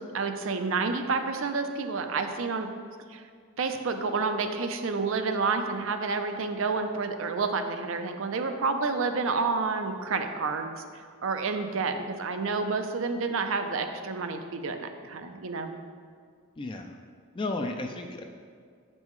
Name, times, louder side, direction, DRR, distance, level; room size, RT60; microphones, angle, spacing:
voice 1, 0.1-2.7 3.1-3.2 3.6-15.7, right 4 dB, 70° right, 7 dB, 0.5 m, -29 dB
voice 2, 16.6-16.9 17.3-18.2, left 2 dB, 25° left, 4 dB, 0.3 m, -33 dB
8.2 x 5.4 x 3.1 m, 2.1 s
head